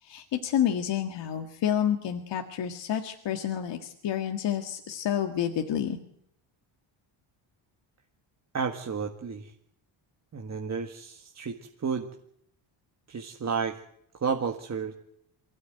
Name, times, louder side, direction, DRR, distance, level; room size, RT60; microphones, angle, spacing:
voice 1, 0.0-6.0, left 9 dB, 60° left, 5 dB, 1.9 m, -29 dB
voice 2, 8.5-9.5 10.3-12.1 13.1-13.8 14.2-14.9, right 6 dB, 35° right, 3 dB, 1.7 m, -32 dB
24.0 x 16.5 x 9.2 m, 0.74 s
cardioid pair, 120°, 48 cm